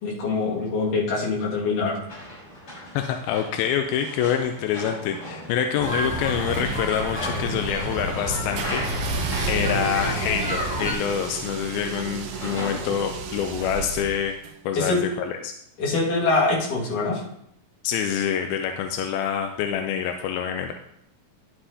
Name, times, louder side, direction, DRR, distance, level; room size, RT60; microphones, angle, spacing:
voice 1, 0.0-2.0 14.8-15.0 15.8-17.2, left 3 dB, 65° left, -5 dB, 3.4 m, -24 dB
sound 1, 2.1-14.1, left 1 dB, 35° left, 4.7 m, -39 dB
voice 2, 3.0-14.3 14.6-15.5 17.8-20.7, left 8 dB, 90° left, 5 dB, 2.5 m, -26 dB
sound 2, 5.8-10.9, equal, 5° right, 2.5 m, -29 dB
sound 3, 8.6-14.5, right 5 dB, 75° right, 1.7 m, -33 dB
11.5 x 7.7 x 2.7 m, 0.74 s
omnidirectional pair, 4.2 m